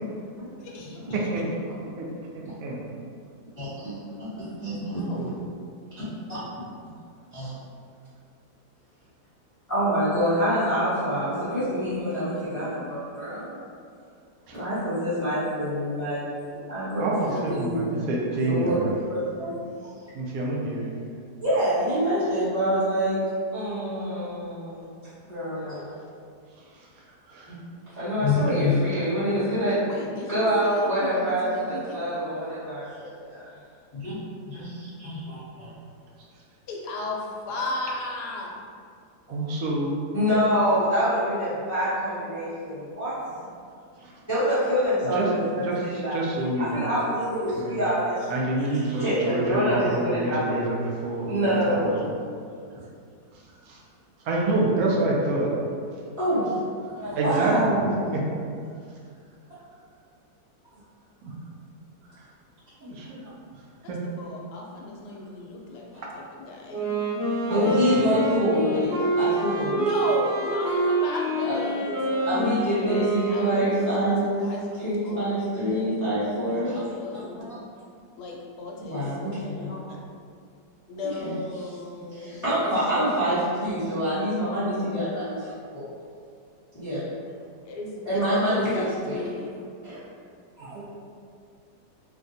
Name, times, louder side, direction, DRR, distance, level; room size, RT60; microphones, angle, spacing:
voice 1, 0.6-1.2 5.0-5.4 6.0-6.3 11.1-12.9 17.2-17.5 29.9-32.1 36.7-38.6 63.8-66.9 67.8-68.2 69.7-72.6 73.3-77.6 78.2-79.1 79.4-80.0 80.9-83.4 87.6-89.6, left 2 dB, 80° left, -2 dB, 1.1 m, -36 dB
voice 2, 2.3-2.9 5.1-5.3 17.0-18.9 20.1-20.9 26.6-26.9 27.3-27.6 28.3-28.4 28.9-29.0 39.3-39.9 44.0-44.2 45.1-45.3 45.6-46.8 47.6-47.8 48.3-51.9 53.7-53.8 54.2-55.5 56.1-56.2 57.1-58.2 61.2-61.3 62.2-62.3 62.8-63.3 63.9-64.0 67.5-68.1 90.6-90.8, right 2 dB, 70° right, -3 dB, 1.0 m, -28 dB
voice 3, 3.6-5.4 6.0-6.4 7.3-7.5 9.7-13.5 14.5-16.2 16.5-17.0 17.3-17.9 18.5-18.8 19.1-19.5 21.4-23.2 23.5-24.9 25.2-25.9 27.5-27.6 28.0-29.8 30.3-33.4 33.9-34.2 34.5-35.7 40.1-43.4 44.3-46.2 46.6-48.2 48.9-50.6 51.3-52.1 56.2-56.6 56.9-58.2 67.5-69.8 71.4-71.5 72.3-74.4 74.8-76.8 77.1-77.2 78.8-79.7 81.2-81.4 82.1-85.8 86.7-87.0 88.0-89.2 89.8-90.0 90.6-90.8, equal, 15° left, -14 dB, 0.7 m, -26 dB
Wind instrument woodwind instrument, 66.7-74.5, right 2 dB, 45° left, 1.2 m, -27 dB
3.5 x 2.2 x 2.6 m, 2.3 s
omnidirectional pair, 1.7 m